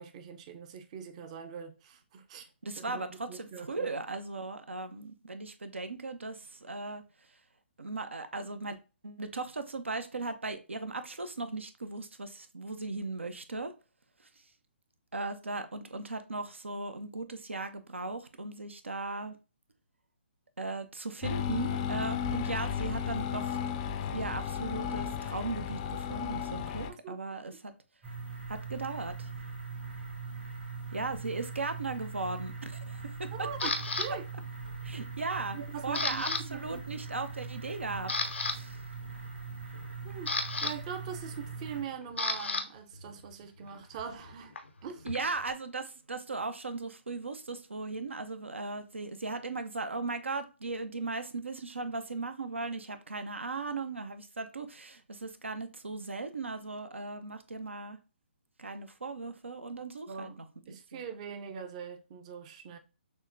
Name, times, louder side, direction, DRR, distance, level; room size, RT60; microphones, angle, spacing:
voice 1, 0.0-2.5 2.8-3.9 27.0-27.2 27.5-27.6 33.3-34.3 35.5-36.8 40.0-40.3 40.6-44.6 44.8-45.1 60.1-60.4 60.7-62.8, right 7 dB, 35° right, 0.5 m, -42 dB
voice 2, 2.6-7.0 7.8-8.8 9.0-13.7 15.1-19.4 20.6-23.6 24.1-27.7 28.5-29.3 30.9-33.5 34.8-38.8 45.0-58.0 58.6-61.0, right 3 dB, 90° right, 0.5 m, -37 dB
sound 1, 21.2-26.9, left 8 dB, 30° left, 0.4 m, -34 dB
sound 2, 28.0-41.8, right 4 dB, 65° right, 1.8 m, -41 dB
Camera, 33.6-34.1 34.7-35.0 35.3-36.4 36.7-36.9 37.4-37.5 37.9-38.6 39.7-42.6 42.9-45.5, left 3 dB, 80° left, 0.6 m, -34 dB
6.3 x 2.1 x 2.5 m
figure-of-eight pair, 140°, 6 cm